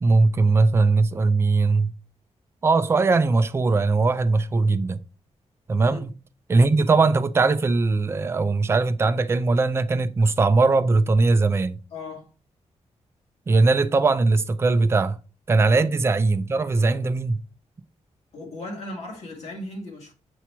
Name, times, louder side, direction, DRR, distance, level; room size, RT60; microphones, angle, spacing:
voice 1, 0.0-1.9 2.6-5.0 5.7-6.1 6.5-11.8 13.5-15.2 15.5-17.4, right 3 dB, 20° right, 0.3 m, -20 dB
voice 2, 11.9-12.3 18.3-20.1, left 2 dB, 65° left, 2.2 m, -36 dB
7.0 x 3.0 x 4.6 m
wide cardioid pair, 160°, 12 cm